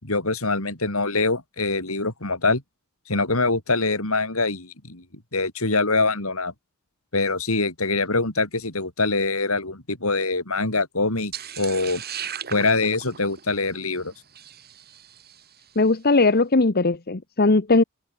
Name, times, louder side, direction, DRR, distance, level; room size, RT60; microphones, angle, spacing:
voice 1, 0.0-2.6 3.1-5.0 5.3-6.5 7.1-12.0 12.5-14.1, left 3 dB, 70° left, 4.8 m, -24 dB
sound 1, 11.3-15.6, right 8 dB, 45° right, 5.9 m, -37 dB
voice 2, 15.8-17.8, left 3 dB, 45° left, 1.1 m, -19 dB
head